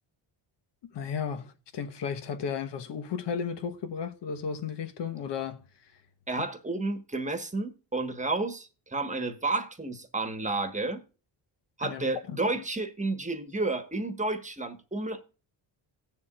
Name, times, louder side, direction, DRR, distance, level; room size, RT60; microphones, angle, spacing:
voice 1, 0.9-5.6 11.8-12.4, left 6 dB, 65° left, 1.2 m, -34 dB
voice 2, 6.3-11.0 11.8-15.2, right 2 dB, 15° right, 1.3 m, -31 dB
17.5 x 7.2 x 2.4 m
cardioid pair, 100°, 45 cm